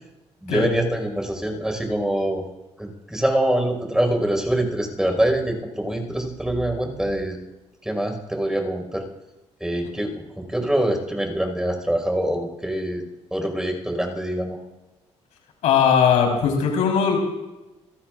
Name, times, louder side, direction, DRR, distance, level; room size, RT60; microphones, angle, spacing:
voice 1, 0.4-2.4 2.8-7.4 7.8-9.0 9.6-13.0 13.3-14.6, right 1 dB, 5° right, 3 dB, 5.1 m, -24 dB
voice 2, 15.6-17.2, left 7 dB, 85° left, 1 dB, 4.3 m, -19 dB
28.5 x 13.5 x 2.6 m, 1.0 s
cardioid pair, 75°, 12 cm